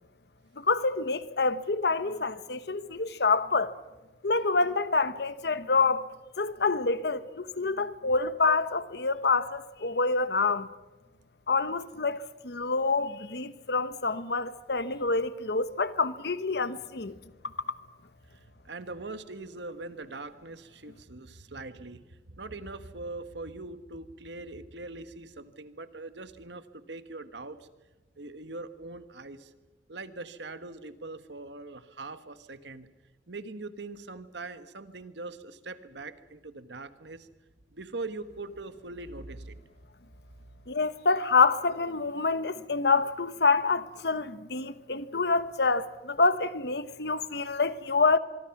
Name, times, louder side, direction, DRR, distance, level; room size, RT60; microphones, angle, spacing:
voice 1, 0.6-3.7 4.2-6.1 6.4-10.7 11.5-17.2 40.7-48.2, left 4 dB, 65° left, 1.1 m, -27 dB
voice 2, 18.3-27.7 28.2-29.5 29.9-32.9 33.3-37.3 37.7-39.6, right 2 dB, 75° right, 1.4 m, -42 dB
24.5 x 24.0 x 6.0 m
head